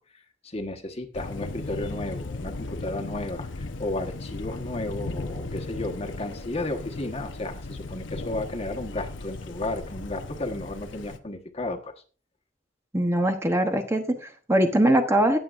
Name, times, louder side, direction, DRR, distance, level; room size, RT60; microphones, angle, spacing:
voice 1, 0.4-11.9, left 2 dB, 35° left, 5 dB, 1.3 m, -33 dB
Thunder, 1.1-11.2, left 2 dB, 80° left, 0.9 m, -36 dB
voice 2, 12.9-15.4, right 1 dB, 15° right, 5 dB, 0.9 m, -22 dB
19.0 x 7.7 x 2.5 m, 0.36 s
head